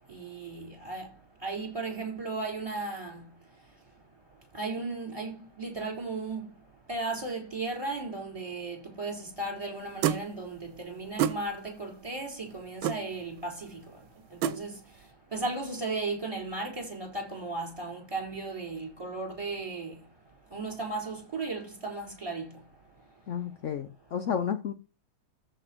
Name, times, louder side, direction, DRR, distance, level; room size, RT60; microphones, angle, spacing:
voice 1, 0.1-1.1 1.4-3.2 4.5-6.5 6.9-13.8 14.4-14.7 15.3-19.9 20.5-22.5, right 3 dB, 15° right, 4.2 m, -35 dB
sound 1, 10.0-10.2 11.2-11.4 12.8-13.0 14.4-14.6, right 10 dB, 80° right, 1.5 m, -26 dB
voice 2, 23.3-24.7, left 8 dB, 70° left, 0.7 m, -31 dB
14.0 x 5.2 x 4.4 m
omnidirectional pair, 2.2 m